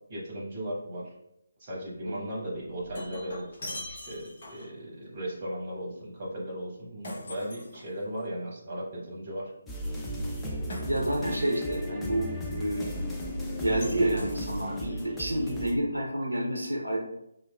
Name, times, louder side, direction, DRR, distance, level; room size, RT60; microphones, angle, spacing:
voice 1, 0.1-1.1 1.6-9.5, equal, 30° right, -4 dB, 1.0 m, -37 dB
Shatter, 2.6-4.8 7.0-8.3 10.7-11.5 13.8-14.9, left 1 dB, 40° left, 0.7 m, -42 dB
sound 1, 9.7-15.7, equal, 5° left, 0.3 m, -35 dB
voice 2, 10.9-12.9 13.2-13.3 13.6-17.0, right 1 dB, 80° right, 0 dB, 0.5 m, -29 dB
2.9 x 2.3 x 2.3 m, 0.81 s
figure-of-eight pair, 150°, 0 cm